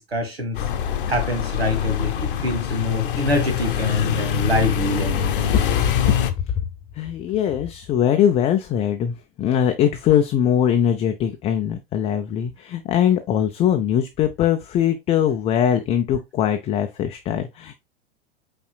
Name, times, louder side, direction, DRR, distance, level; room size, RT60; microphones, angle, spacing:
voice 1, 0.1-0.6 1.1-5.4, left 1 dB, 80° right, 1.6 m, -25 dB
sound 1, 0.5-6.3, left 9 dB, 60° left, 0.8 m, -24 dB
voice 2, 7.0-17.7, left 9 dB, 20° left, 0.4 m, -21 dB
5.5 x 4.3 x 2.2 m
figure-of-eight pair, 90°, 30 cm